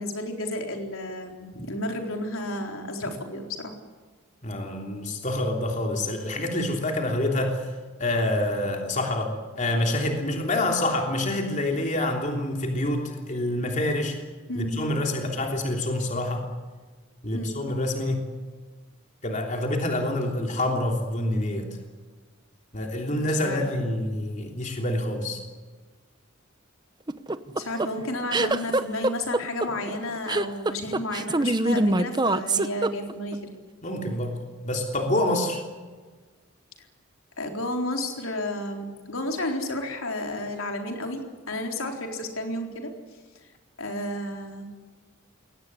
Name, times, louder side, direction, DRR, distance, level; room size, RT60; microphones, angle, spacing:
voice 1, 0.0-3.7 14.5-14.8 17.3-17.6 23.1-23.6 27.5-33.4 37.4-42.9 43.8-44.7, left 1 dB, 80° left, 3 dB, 4.1 m, -32 dB
voice 2, 4.4-7.7 8.0-14.2 14.5-16.5 17.2-18.3 19.2-21.7 22.7-25.4 33.8-35.6, left 1 dB, 35° left, 2 dB, 3.2 m, -27 dB
sound 1, 27.1-33.4, right 2 dB, 20° right, 0.8 m, -24 dB
22.0 x 18.5 x 9.9 m, 1.4 s
head